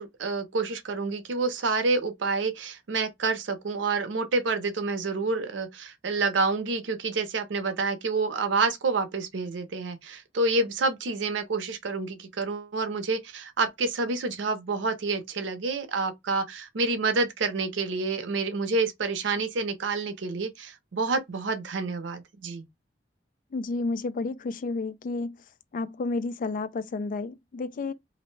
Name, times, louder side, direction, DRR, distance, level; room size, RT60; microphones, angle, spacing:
voice 1, 0.0-22.6, right 3 dB, 90° right, 0.6 m, -28 dB
voice 2, 23.5-25.4 25.7-27.9, left 3 dB, 45° left, 0.3 m, -31 dB
2.5 x 2.0 x 3.1 m
head